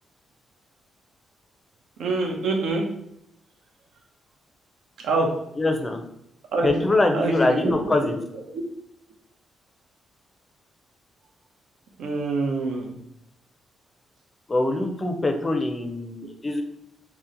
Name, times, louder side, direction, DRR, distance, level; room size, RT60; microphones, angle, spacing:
voice 1, 2.0-2.9 5.0-5.4 6.5-8.1 12.0-12.9, right 3 dB, 85° right, 1 dB, 0.6 m, -26 dB
voice 2, 5.6-6.0 6.6-8.2 14.5-16.6, left 2 dB, 25° left, 5 dB, 0.5 m, -23 dB
2.8 x 2.1 x 3.7 m, 0.80 s
cardioid pair, 100°, 0 cm